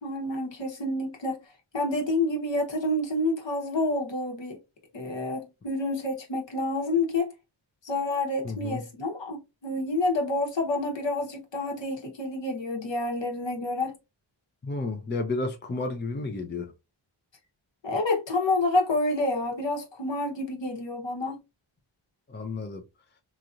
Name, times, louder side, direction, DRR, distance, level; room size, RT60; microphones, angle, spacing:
voice 1, 0.0-1.4 1.7-4.6 4.9-7.3 7.8-13.9 17.8-21.4, left 2 dB, 65° left, 1.2 m, -28 dB
voice 2, 8.4-8.8 14.6-16.7 22.3-22.8, left 3 dB, 20° left, 0.6 m, -31 dB
3.1 x 2.6 x 2.4 m
wide cardioid pair, 60°, 48 cm